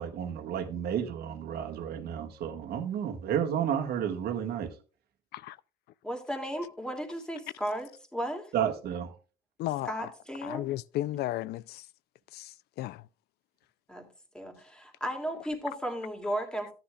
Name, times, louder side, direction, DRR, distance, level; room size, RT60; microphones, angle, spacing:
voice 1, 0.0-4.7 8.5-9.1, right 9 dB, 70° right, 1.7 m, -31 dB
voice 2, 6.0-8.5 9.9-10.7 13.9-14.1 14.3-16.7, equal, 5° left, 2.5 m, -35 dB
voice 3, 9.6-10.1 10.4-11.9 12.3-13.1, left 15 dB, 75° left, 0.4 m, -34 dB
13.0 x 10.0 x 2.3 m
cardioid pair, 110°, 17 cm